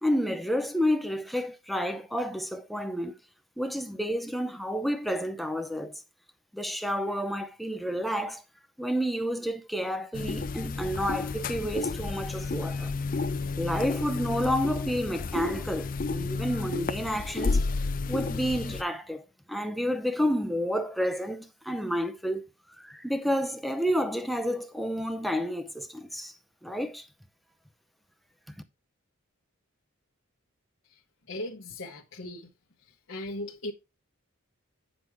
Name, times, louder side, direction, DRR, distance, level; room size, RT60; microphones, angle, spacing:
voice 1, 0.0-3.1 3.6-6.0 6.5-8.4 8.8-12.9 13.6-17.6 18.1-22.5 22.8-26.3 26.6-27.1, equal, ahead, 0.6 m, -30 dB
sound 1, 10.1-18.8, left 4 dB, 40° left, 0.4 m, -31 dB
voice 2, 31.3-32.5 33.1-33.7, left 1 dB, 60° left, 1.1 m, -37 dB
9.3 x 6.1 x 3.5 m
head